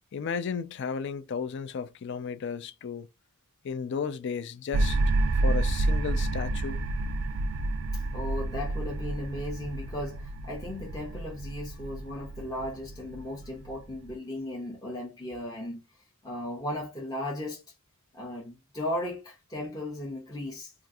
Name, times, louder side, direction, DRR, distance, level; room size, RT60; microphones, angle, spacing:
voice 1, 0.1-3.1 3.6-5.0 5.3-6.8, left 6 dB, 55° left, 0.4 m, -34 dB
sound 1, 4.7-14.1, right 2 dB, 65° right, 0.4 m, -29 dB
voice 2, 7.9-15.8 16.2-17.6 18.1-20.7, left 1 dB, 20° left, 0.6 m, -36 dB
3.5 x 2.4 x 2.6 m
head